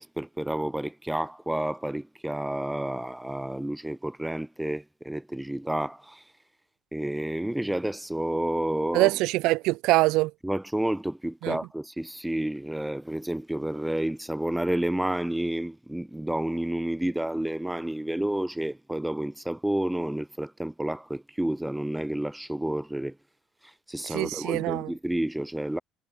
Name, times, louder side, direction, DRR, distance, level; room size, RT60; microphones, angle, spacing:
voice 1, 0.0-6.2 6.9-9.1 10.4-23.2 23.6-25.8, right 1 dB, 5° right, 1.8 m, -30 dB
voice 2, 8.9-10.3 11.4-11.6 24.1-24.9, right 20 dB, 65° right, 1.8 m, -24 dB
cardioid pair, 180°, 0 cm